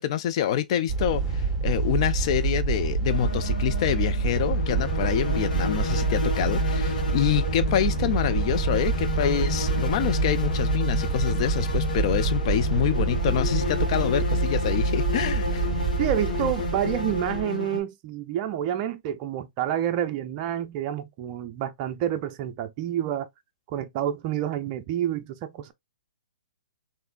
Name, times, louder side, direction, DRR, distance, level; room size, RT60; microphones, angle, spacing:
voice 1, 0.0-15.6, left 10 dB, 40° left, 0.4 m, -26 dB
sound 1, 0.9-17.4, right 4 dB, 10° right, 1.6 m, -26 dB
sound 2, 3.1-17.8, left 4 dB, 70° left, 1.3 m, -32 dB
voice 2, 16.0-23.3 23.7-25.7, right 11 dB, 30° right, 0.5 m, -28 dB
3.5 x 2.6 x 2.4 m
hypercardioid pair, 140°, 5 cm